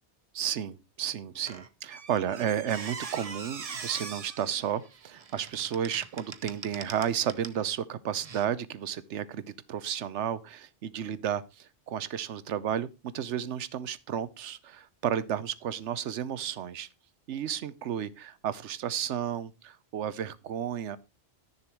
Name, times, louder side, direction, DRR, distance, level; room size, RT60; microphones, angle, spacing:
voice 1, 0.3-16.9 17.3-21.0, right 9 dB, 90° right, 1.0 m, -32 dB
Squeak, 1.5-7.6 8.2-8.4, right 5 dB, 35° right, 0.7 m, -42 dB
11.5 x 6.9 x 4.4 m
omnidirectional pair, 1.2 m